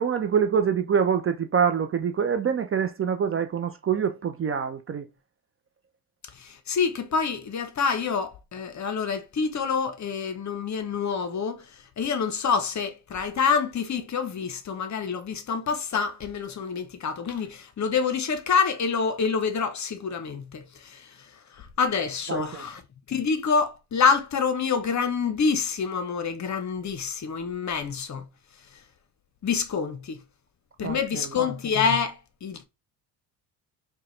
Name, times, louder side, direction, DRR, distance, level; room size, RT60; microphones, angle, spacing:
voice 1, 0.0-5.1 22.3-22.7 30.8-31.4, right 7 dB, 30° right, 0.5 m, -25 dB
voice 2, 6.3-11.7 12.0-21.2 21.5-22.8 23.1-28.3 29.4-30.2 30.8-32.6, left 5 dB, 35° left, 0.9 m, -27 dB
4.6 x 2.3 x 3.1 m
hypercardioid pair, 65°, 48 cm